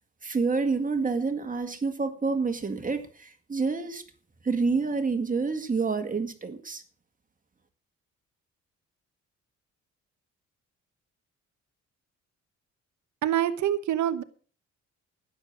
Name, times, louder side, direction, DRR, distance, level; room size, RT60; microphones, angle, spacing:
voice 1, 0.2-4.0 4.4-6.8, right 4 dB, 25° right, 2.0 m, -28 dB
voice 2, 13.2-14.2, right 11 dB, 70° right, 1.2 m, -25 dB
12.5 x 9.8 x 6.3 m
cardioid pair, 90°, 30 cm